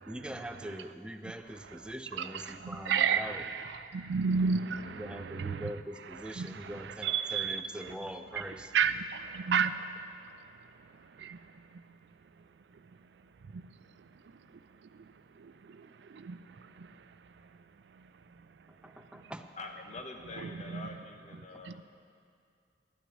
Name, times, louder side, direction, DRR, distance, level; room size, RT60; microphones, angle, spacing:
voice 1, 0.0-3.4 4.9-8.7 18.7-19.5 21.5-21.6, equal, 5° right, 0.4 m, -42 dB
voice 2, 2.2-5.7 6.4-7.6 8.7-10.1 10.8-11.4 11.7-11.8 13.5-13.6 14.9-15.1 15.4-17.0 17.9-18.0 19.2-19.3 20.4-20.8 21.6-21.7, right 6 dB, 70° right, 0.4 m, -33 dB
voice 3, 19.6-21.8, left 3 dB, 40° left, 0.9 m, -45 dB
11.5 x 6.1 x 8.5 m
head